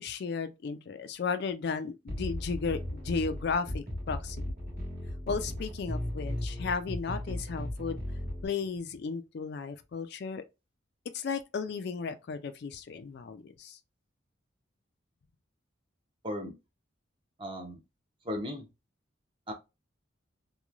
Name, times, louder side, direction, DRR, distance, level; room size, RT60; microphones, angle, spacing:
voice 1, 0.0-4.5 5.3-8.0 8.4-10.4 11.1-13.8, left 5 dB, 55° left, 0.3 m, -34 dB
sound 1, 2.1-8.5, left 1 dB, 50° right, 1.3 m, -36 dB
voice 2, 17.4-17.8 18.2-18.7 19.5-19.6, left 1 dB, 25° right, 0.7 m, -36 dB
3.0 x 2.2 x 2.4 m
head